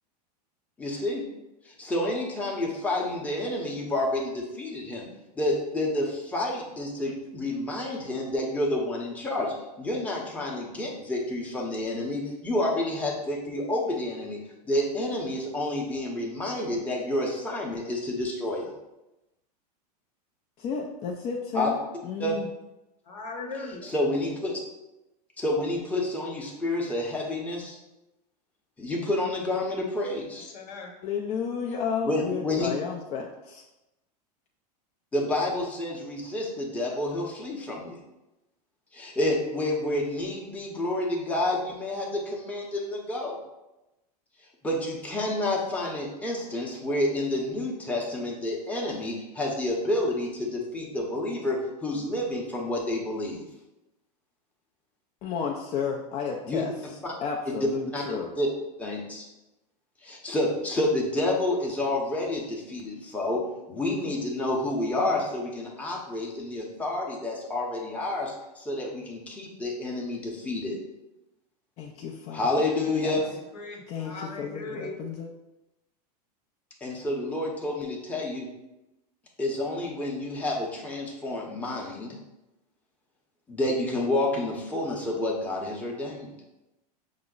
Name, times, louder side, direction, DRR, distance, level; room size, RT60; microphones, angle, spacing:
voice 1, 0.8-1.2 1.7-5.1 5.3-14.4 14.7-18.7 21.5-21.7 22.2-22.4 23.5-24.6 25.4-27.8 28.8-30.4 32.0-32.7 35.1-38.0 38.9-43.4 44.6-53.4 56.5-56.6 57.0-57.1 57.5-57.7 57.9-58.0 58.4-58.5 58.8-59.2 60.0-63.4 63.7-70.8 72.3-73.2 76.8-78.5 79.4-82.2 83.5-86.3, left 1 dB, 5° left, -3 dB, 0.7 m, -29 dB
voice 2, 20.6-22.5 31.0-33.6 55.2-56.7 57.2-58.3 71.8-73.2 73.9-75.3, left 6 dB, 30° left, 0 dB, 0.4 m, -32 dB
voice 3, 23.1-23.9 30.5-30.9 73.5-74.9, left 3 dB, 75° left, 3 dB, 0.9 m, -38 dB
5.6 x 2.0 x 3.8 m, 0.97 s
supercardioid pair, 125°, 21 cm